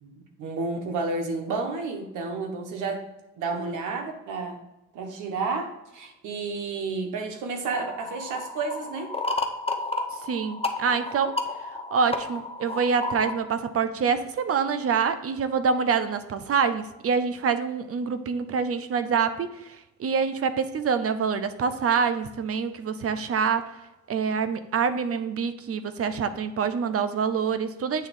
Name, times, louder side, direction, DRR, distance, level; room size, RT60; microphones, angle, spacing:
voice 1, 0.0-3.0 3.4-4.6 4.9-9.1, right 4 dB, 85° right, 4 dB, 1.3 m, -31 dB
sound 1, 7.7-13.4, left 2 dB, 20° left, 0.9 m, -32 dB
voice 2, 10.3-11.4 11.9-19.5 20.0-23.7 24.1-28.1, right 6 dB, 50° right, 12 dB, 0.7 m, -26 dB
8.4 x 3.6 x 5.3 m, 0.97 s
cardioid pair, 90°, 30 cm